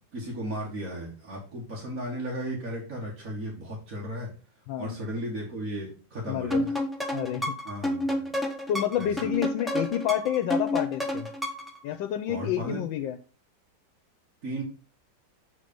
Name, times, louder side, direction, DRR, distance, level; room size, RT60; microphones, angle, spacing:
voice 1, 0.1-4.3 4.8-6.6 7.6-8.3 9.0-9.3 12.3-12.8 14.4-14.6, right 1 dB, 45° right, -4 dB, 2.0 m, -35 dB
voice 2, 4.7-5.0 6.3-6.7 7.1-7.5 8.7-11.3 11.8-13.2, left 10 dB, 80° left, 9 dB, 1.3 m, -29 dB
sound 1, 6.5-11.8, left 1 dB, ahead, 0.7 m, -30 dB
7.6 x 3.9 x 5.2 m, 0.36 s
omnidirectional pair, 2.1 m